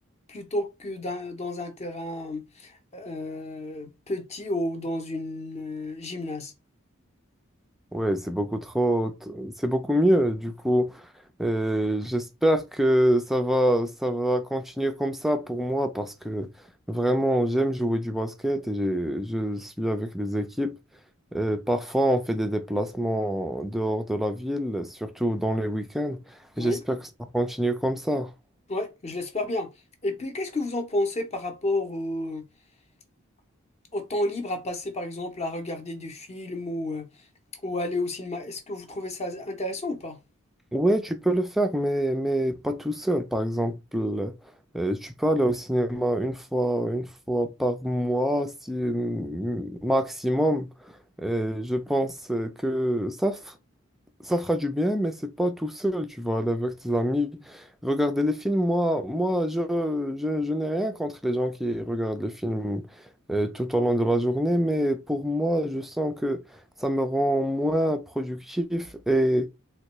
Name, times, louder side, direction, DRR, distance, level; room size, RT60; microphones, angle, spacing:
voice 1, 0.3-6.5 26.6-26.8 28.7-29.7 30.0-32.4 33.9-37.1 37.6-40.2, left 1 dB, 30° left, 0.6 m, -31 dB
voice 2, 7.9-11.1 11.4-16.5 16.9-20.7 21.3-27.0 27.3-28.3 40.7-44.3 44.7-53.5 54.2-62.9 63.3-66.4 66.8-69.5, equal, ahead, 0.3 m, -26 dB
3.7 x 2.2 x 3.0 m
head